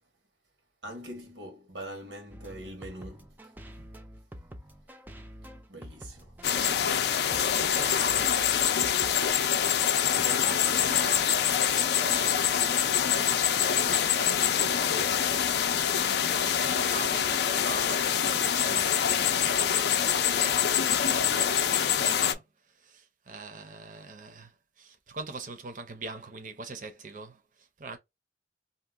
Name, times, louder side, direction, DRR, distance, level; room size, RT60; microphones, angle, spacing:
voice 1, 0.8-3.4 3.8-3.9 5.7-6.4 10.1-11.1 18.6-18.9, right 1 dB, 85° right, 1.2 m, -43 dB
sound 1, 2.3-9.3, equal, 10° right, 0.3 m, -47 dB
sound 2, 6.4-22.3, left 8 dB, 60° left, 0.4 m, -25 dB
voice 2, 6.6-28.0, right 3 dB, 45° right, 0.6 m, -44 dB
2.8 x 2.2 x 3.4 m
head